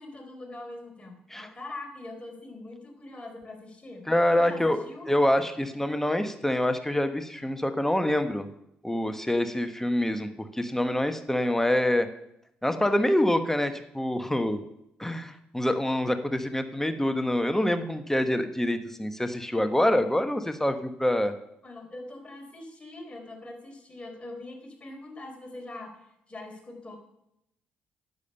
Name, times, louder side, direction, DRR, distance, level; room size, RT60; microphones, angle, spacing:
voice 1, 0.0-4.0 4.4-5.1 21.6-27.0, left 2 dB, 25° left, 1 dB, 4.3 m, -43 dB
voice 2, 4.1-4.8 5.1-8.5 8.8-12.1 12.6-14.6 15.0-21.3, left 1 dB, 10° left, 8 dB, 1.3 m, -26 dB
10.5 x 8.6 x 5.6 m, 0.79 s
hypercardioid pair, 45°, 5 cm